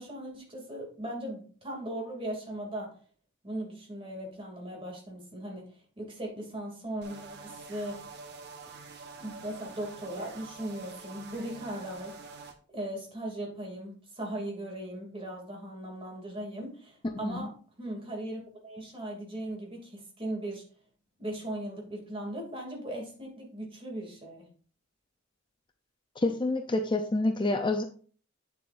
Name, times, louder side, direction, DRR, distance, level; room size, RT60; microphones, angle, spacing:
voice 1, 0.0-2.9 3.4-8.0 9.2-12.2 12.7-20.7 21.2-24.5, right 1 dB, 25° right, -1 dB, 2.6 m, -38 dB
sound 1, 7.0-12.5, right 4 dB, 55° right, 1.2 m, -46 dB
voice 2, 26.2-27.8, left 2 dB, 25° left, 5 dB, 0.5 m, -28 dB
8.6 x 7.5 x 2.6 m, 0.42 s
head